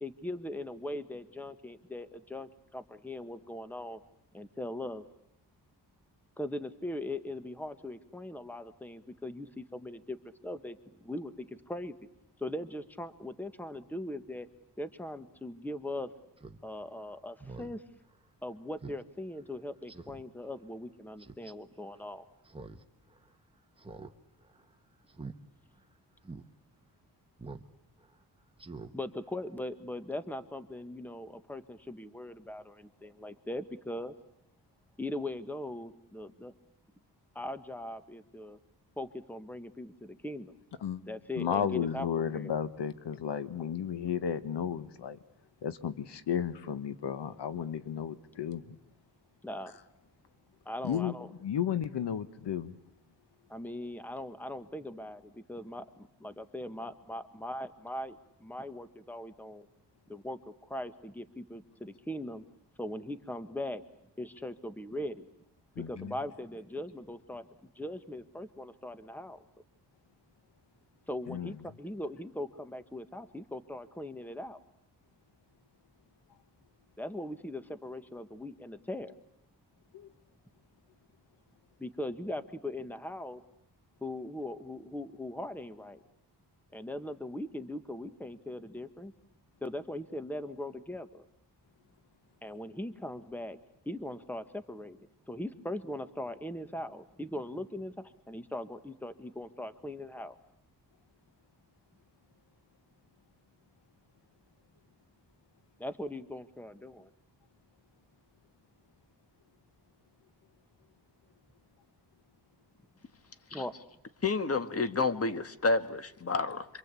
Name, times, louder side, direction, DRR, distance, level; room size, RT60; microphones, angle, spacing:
voice 1, 0.0-4.0 4.3-5.0 6.4-10.2 10.4-12.0 12.4-14.5 14.8-16.1 16.6-17.8 18.4-22.2 28.9-34.1 35.0-36.5 37.3-38.6 39.0-40.5 41.1-42.1 42.3-42.6 49.4-49.7 50.6-51.3 53.5-59.7 60.1-62.4 62.8-63.8 64.2-65.3 65.8-67.5 67.7-69.4 71.1-74.6 77.0-79.1 81.8-83.4 84.0-86.0 86.7-89.1 89.6-91.3 92.4-93.6 93.8-95.0 95.3-100.4 105.8-107.1 113.5-113.7, left 1 dB, 5° left, 10 dB, 1.4 m, -40 dB
Speech synthesizer, 16.4-16.6 17.0-17.1 17.4-17.7 18.1-18.2 18.8-19.0 19.4-19.5 19.9-20.2 21.2-21.5 22.4-22.8 23.1-23.2 23.8-24.1 24.4-24.6 25.1-25.4 25.8-25.9 26.2-26.4 27.4-27.7 28.0-28.1 28.6-28.9 29.3-29.4, right 3 dB, 15° right, 1.4 m, -45 dB
voice 2, 41.4-45.2 45.6-48.6 50.8-51.1 51.4-52.7 65.8-66.1 71.3-71.5 79.9-80.1, left 8 dB, 80° left, 12 dB, 1.3 m, -33 dB
voice 3, 114.2-116.7, left 3 dB, 35° left, 10 dB, 1.7 m, -29 dB
27.0 x 25.0 x 8.4 m, 0.79 s
wide cardioid pair, 105°, 41 cm